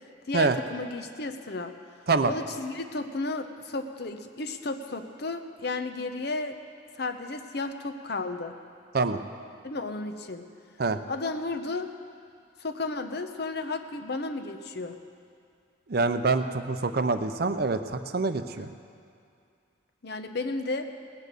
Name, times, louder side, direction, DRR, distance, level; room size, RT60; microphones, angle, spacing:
voice 1, 0.3-1.7 2.3-6.6 7.0-8.5 9.6-10.4 11.1-11.9 12.6-15.0 18.6-18.7 20.0-20.9, left 3 dB, 55° left, 7 dB, 0.8 m, -33 dB
voice 2, 15.9-18.7, right 3 dB, 50° right, 9 dB, 0.6 m, -25 dB
18.0 x 9.2 x 6.7 m, 2.3 s
head